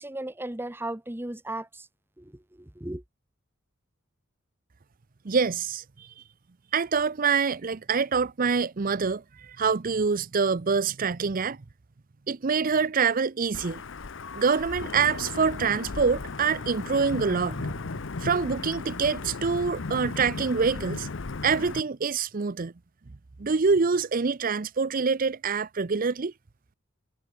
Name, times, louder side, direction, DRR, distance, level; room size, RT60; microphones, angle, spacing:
voice 1, 0.0-1.9 2.2-2.3 2.6-3.0, right 1 dB, 10° right, 1.0 m, -35 dB
voice 2, 5.2-6.1 6.7-11.6 12.3-13.8 14.3-17.8 18.2-21.1 21.4-22.7 23.4-26.3, right 5 dB, 45° right, 0.6 m, -25 dB
Wind / Thunder / Rain, 13.5-21.8, left 3 dB, 65° left, 0.8 m, -36 dB
Mallet percussion, 14.2-16.0, left 5 dB, 85° left, 2.8 m, -50 dB
head